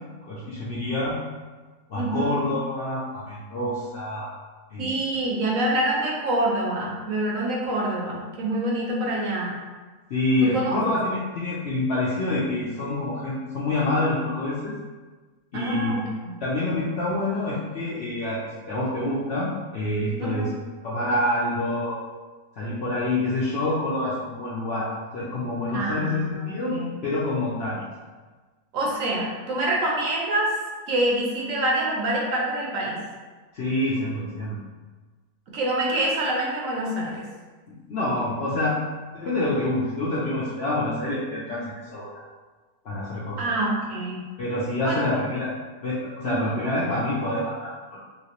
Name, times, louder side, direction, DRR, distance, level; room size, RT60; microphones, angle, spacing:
voice 1, 0.3-1.2 1.9-4.3 4.7-5.0 10.1-14.7 15.5-15.9 16.4-20.5 20.8-21.9 22.6-26.8 27.0-27.8 33.5-34.6 37.7-38.8 39.1-42.2 42.8-43.4 44.4-45.5 45.8-48.0, left 1 dB, 70° left, -7 dB, 0.6 m, -27 dB
voice 2, 1.9-2.4 4.8-9.6 10.4-10.8 15.5-16.4 20.2-20.6 25.7-27.0 28.7-30.5 30.9-33.0 35.5-37.2 43.4-44.2 44.8-45.1 46.2-46.6, right 1 dB, 65° right, -3 dB, 1.0 m, -26 dB
3.1 x 2.9 x 2.9 m, 1.3 s
omnidirectional pair, 1.6 m